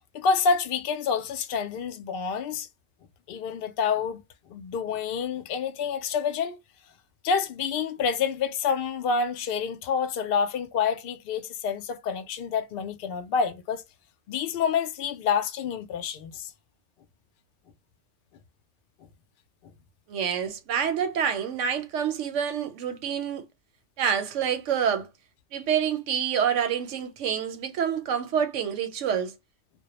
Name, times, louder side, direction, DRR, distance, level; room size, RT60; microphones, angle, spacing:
voice 1, 0.1-2.7 3.3-4.2 4.5-6.6 7.2-13.8 14.3-16.5, left 6 dB, 60° left, 0.6 m, -28 dB
voice 2, 20.1-23.5 24.0-25.1 25.5-29.3, right 8 dB, 90° right, 1.0 m, -27 dB
2.2 x 2.1 x 2.8 m
omnidirectional pair, 1.2 m